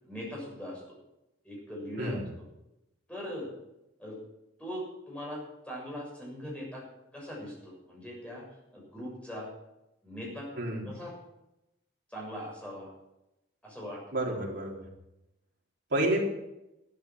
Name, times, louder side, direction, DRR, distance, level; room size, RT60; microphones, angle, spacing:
voice 1, 0.0-1.0 1.4-2.2 3.1-3.5 4.0-4.2 4.6-6.8 7.1-8.4 8.7-9.5 10.0-10.5 10.9-11.2 12.1-12.9 13.6-14.4, equal, 5° left, -4 dB, 6.9 m, -40 dB
voice 2, 10.6-10.9 14.1-14.8 15.9-16.2, right 1 dB, 55° right, -1 dB, 3.6 m, -29 dB
13.5 x 11.5 x 6.2 m, 0.89 s
head